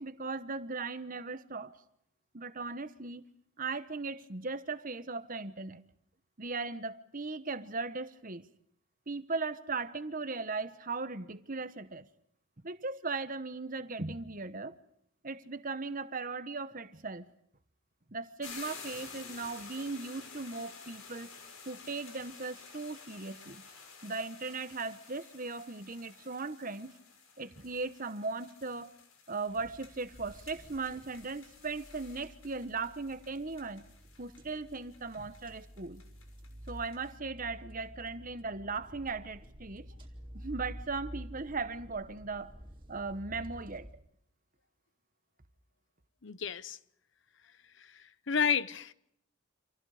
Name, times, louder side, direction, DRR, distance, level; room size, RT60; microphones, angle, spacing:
voice 1, 0.0-1.8 2.3-3.2 3.6-5.8 6.4-8.4 9.1-12.1 12.6-14.8 15.2-17.3 18.1-21.3 21.7-23.6 24.0-26.9 27.4-28.9 29.3-33.9 34.2-36.0 36.7-39.9 40.3-42.5 42.9-43.9, right 3 dB, 40° right, 1.2 m, -38 dB
sound 1, 18.4-37.1, left 5 dB, 85° left, 6.1 m, -52 dB
sound 2, 29.5-43.9, equal, 25° right, 3.2 m, -50 dB
voice 2, 46.2-46.8 48.3-48.9, left 6 dB, 60° left, 0.9 m, -30 dB
29.5 x 27.0 x 5.0 m
head